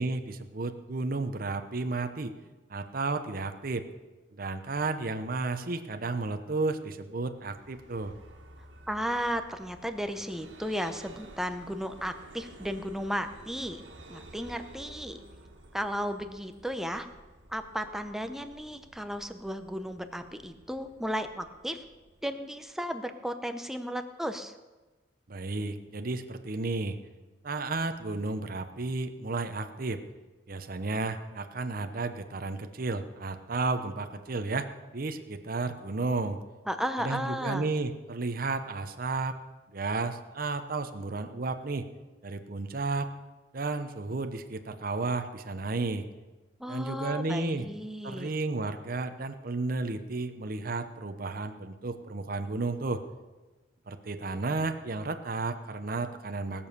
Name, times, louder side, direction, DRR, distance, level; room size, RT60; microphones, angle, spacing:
voice 1, 0.0-2.3 2.7-3.9 4.3-8.1 25.3-27.0 27.4-30.0 30.5-36.4 37.0-39.4 39.7-41.8 42.2-43.1 43.5-46.0 46.7-47.7 48.0-53.0 53.9-56.7, right 3 dB, 50° right, 8 dB, 0.8 m, -32 dB
Vehicle, 7.3-22.8, right 1 dB, 90° right, 1.7 m, -52 dB
voice 2, 8.9-13.8 14.1-15.2 15.7-17.1 17.5-21.8 22.2-24.5 36.7-37.7 46.6-48.3, equal, ahead, 8 dB, 0.8 m, -34 dB
19.0 x 7.1 x 6.7 m, 1.2 s
head